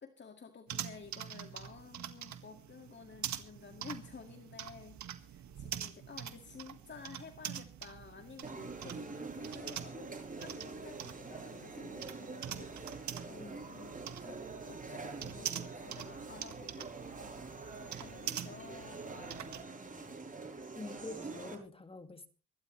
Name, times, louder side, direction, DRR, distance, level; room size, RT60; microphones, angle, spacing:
voice 1, 0.0-14.4 14.7-16.9 17.2-17.3 17.7-20.2, left 5 dB, 35° left, 2.1 m, -53 dB
sound 1, 0.7-19.6, right 10 dB, 70° right, 1.8 m, -45 dB
sound 2, 8.4-21.6, right 3 dB, 25° right, 7.9 m, -46 dB
voice 2, 13.4-13.7 20.8-22.3, left 2 dB, 20° left, 2.2 m, -46 dB
25.0 x 12.0 x 3.2 m
cardioid pair, 90°, 30 cm